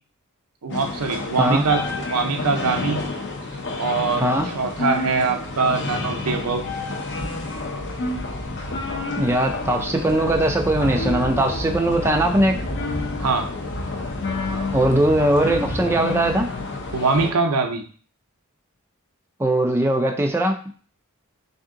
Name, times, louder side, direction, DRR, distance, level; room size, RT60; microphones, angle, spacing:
voice 1, 0.6-1.8 2.1-3.0 3.8-6.6 13.2-13.5 16.9-17.8, right 4 dB, 80° right, 5 dB, 0.6 m, -23 dB
sound 1, 0.7-17.3, left 2 dB, 55° left, 0.7 m, -29 dB
voice 2, 9.2-12.6 14.7-16.5 19.4-20.6, right 1 dB, 10° right, 2 dB, 0.4 m, -20 dB
3.5 x 2.7 x 3.7 m, 0.41 s
head